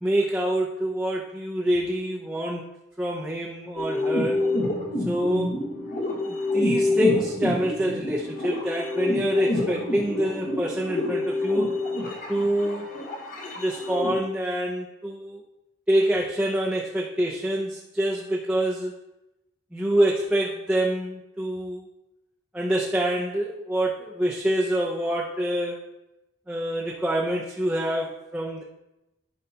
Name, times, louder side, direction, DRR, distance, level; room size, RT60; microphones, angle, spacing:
voice 1, 0.0-2.7 3.0-4.5 5.1-5.5 6.2-11.7 12.3-12.9 13.6-15.4 15.9-18.9 19.7-21.9 22.5-25.8 26.5-28.6, right 1 dB, 5° right, -4 dB, 0.7 m, -26 dB
sound 1, 3.8-14.2, left 2 dB, 40° left, 1.3 m, -27 dB
13.5 x 5.6 x 2.9 m, 0.93 s
head